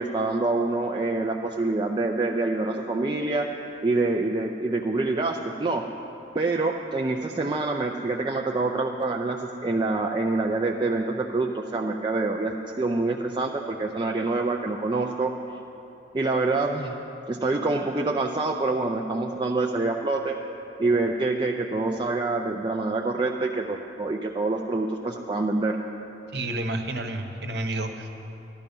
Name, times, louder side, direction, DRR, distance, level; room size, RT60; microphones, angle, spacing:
voice 1, 0.0-3.5 3.8-5.9 6.3-15.3 16.1-17.0 17.3-20.4 20.8-25.8, right 3 dB, 25° right, 1 dB, 0.4 m, -26 dB
voice 2, 26.3-28.1, right 1 dB, 65° right, 5 dB, 1.1 m, -30 dB
13.0 x 12.0 x 5.4 m, 3.0 s
head